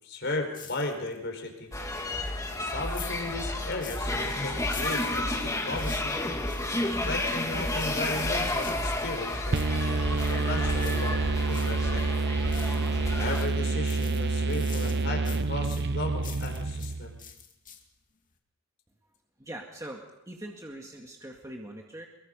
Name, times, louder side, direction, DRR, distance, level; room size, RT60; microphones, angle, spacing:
voice 1, 0.0-1.7 2.5-6.2 7.1-9.6 9.9-11.2 11.5-12.1 13.2-17.2, left 2 dB, 55° left, 4 dB, 4.9 m, -35 dB
sound 1, 0.5-1.3 1.6-4.2 4.6-6.7 7.7-9.0 9.3-11.8 12.1-13.0 13.3-16.9 17.2-18.0 18.3-18.4, left 9 dB, 40° left, 2.4 m, -47 dB
sound 2, 1.7-13.5, left 1 dB, 15° left, 2.3 m, -31 dB
sound 3, 9.5-17.2, right 3 dB, 55° right, 0.9 m, -28 dB
voice 2, 19.4-22.1, right 1 dB, 15° right, 0 dB, 2.0 m, -42 dB
24.0 x 22.5 x 5.4 m, 0.89 s
head